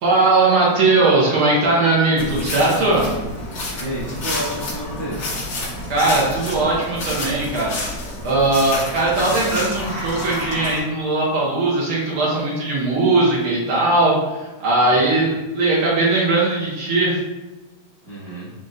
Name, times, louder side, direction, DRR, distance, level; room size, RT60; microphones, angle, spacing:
voice 1, 0.0-3.0 5.9-7.7 8.2-17.2, right 2 dB, 75° right, -6 dB, 1.2 m, -19 dB
sound 1, 2.2-10.8, left 1 dB, 55° left, 1.2 m, -29 dB
voice 2, 3.7-5.2 14.8-15.2 18.0-18.5, equal, 70° left, -10 dB, 1.1 m, -31 dB
5.8 x 2.5 x 2.6 m, 1.1 s
omnidirectional pair, 3.4 m